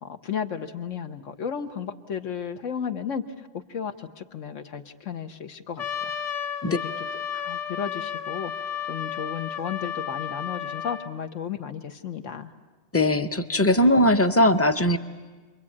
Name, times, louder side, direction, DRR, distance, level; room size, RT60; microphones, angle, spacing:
voice 1, 0.0-6.1 6.6-6.9 7.3-8.5 8.9-12.5, left 7 dB, 75° left, 7 dB, 1.5 m, -34 dB
Trumpet, 5.8-11.1, left 8 dB, 30° left, 1.5 m, -32 dB
voice 2, 12.9-15.0, left 1 dB, 15° left, 8 dB, 0.7 m, -20 dB
30.0 x 23.0 x 8.6 m, 1.3 s
omnidirectional pair, 1.3 m